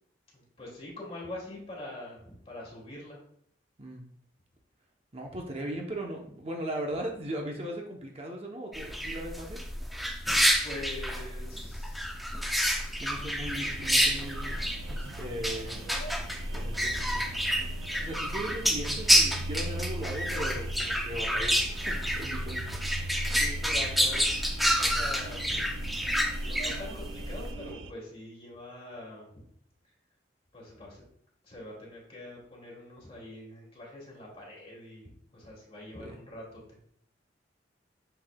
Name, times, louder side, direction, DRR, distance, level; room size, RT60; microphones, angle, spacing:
voice 1, 0.3-3.2 10.2-12.2 13.2-13.3 23.3-25.6 26.4-29.5 29.8-29.9 30.5-31.0 31.4-36.8, left 1 dB, 30° left, -3 dB, 2.3 m, -44 dB
voice 2, 5.1-9.6 9.9-10.0 13.0-14.6 14.9-15.8 16.5-17.4 18.0-22.9 36.0-36.2, right 1 dB, 35° right, 1 dB, 0.8 m, -38 dB
sound 1, 8.7-27.5, equal, ahead, 0.5 m, -29 dB
sound 2, 12.6-27.7, equal, 50° left, 0.8 m, -49 dB
sound 3, 13.4-27.9, right 2 dB, 90° right, 0.5 m, -42 dB
6.9 x 6.1 x 2.2 m, 0.66 s
head